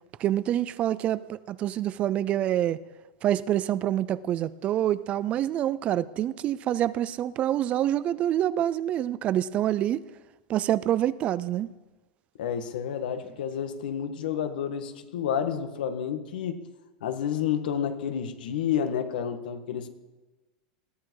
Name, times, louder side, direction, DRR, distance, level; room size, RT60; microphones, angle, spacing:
voice 1, 0.2-2.8 3.2-10.1 10.5-11.7, right 12 dB, 25° right, 0.4 m, -26 dB
voice 2, 12.4-16.6 17.0-19.9, left 8 dB, 85° left, 1.8 m, -30 dB
20.5 x 14.5 x 4.8 m
supercardioid pair, 160°, 5 cm